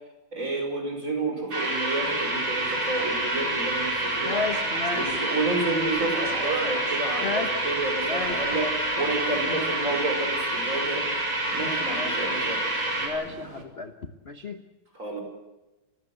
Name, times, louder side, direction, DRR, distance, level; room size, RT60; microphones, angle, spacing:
voice 1, 0.3-4.4 4.9-11.0 11.5-12.6 14.9-15.2, right 2 dB, 35° right, 3 dB, 6.0 m, -30 dB
sound 1, 1.5-13.1, right 1 dB, 65° right, 6.1 m, -28 dB
Subway metro underground, 2.0-13.6, right 4 dB, 85° right, 3.6 m, -41 dB
voice 2, 4.2-5.2 7.2-7.7 8.0-8.7 11.9-12.2 13.0-13.9 14.2-14.6, left 4 dB, 35° left, 8 dB, 1.2 m, -33 dB
30.0 x 15.5 x 8.1 m, 1.1 s
omnidirectional pair, 2.3 m